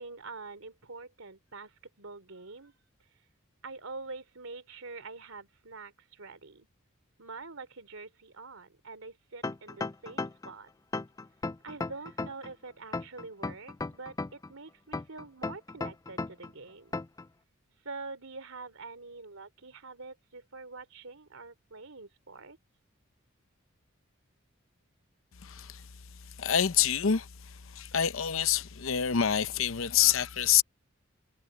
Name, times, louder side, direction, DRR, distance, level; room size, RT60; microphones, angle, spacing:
voice 1, 0.0-2.7 3.6-6.7 7.2-10.7 11.6-16.9 17.8-22.6, right 3 dB, 75° right, 3.0 m, -45 dB
sound 1, 9.4-10.5 10.9-12.5 12.9-14.5 14.9-16.5 16.9-17.2, left 3 dB, 15° left, 0.3 m, -35 dB
voice 2, 25.4-25.8 26.4-27.3 27.8-30.6, left 9 dB, 70° left, 0.7 m, -26 dB
head